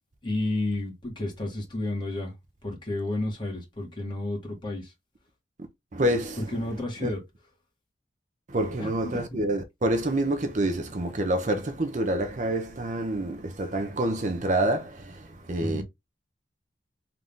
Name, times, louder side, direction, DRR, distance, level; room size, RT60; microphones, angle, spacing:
voice 1, 0.2-2.3 2.6-4.9 6.4-7.2 8.8-9.4 15.6-15.8, left 1 dB, 25° left, 1.8 m, -31 dB
voice 2, 5.9-7.1 8.5-15.8, right 1 dB, 45° right, 0.7 m, -27 dB
3.8 x 2.8 x 3.6 m
head